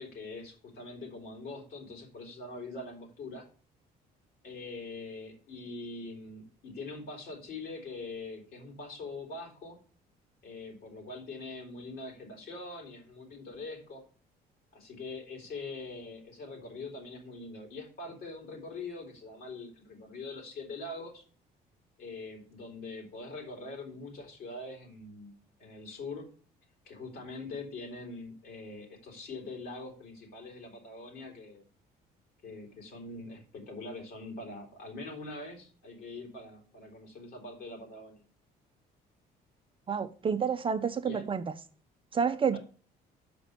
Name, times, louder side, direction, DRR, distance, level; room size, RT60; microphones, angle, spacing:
voice 1, 0.0-3.5 4.4-9.8 10.4-14.0 14.7-21.2 22.0-26.3 26.8-31.6 32.4-38.2 41.1-41.2 42.5-42.6, left 3 dB, 65° left, 3.7 m, -43 dB
voice 2, 39.9-41.4 42.1-42.6, right 6 dB, 30° right, 0.6 m, -29 dB
6.0 x 5.2 x 6.5 m
cardioid pair, 110°, 17 cm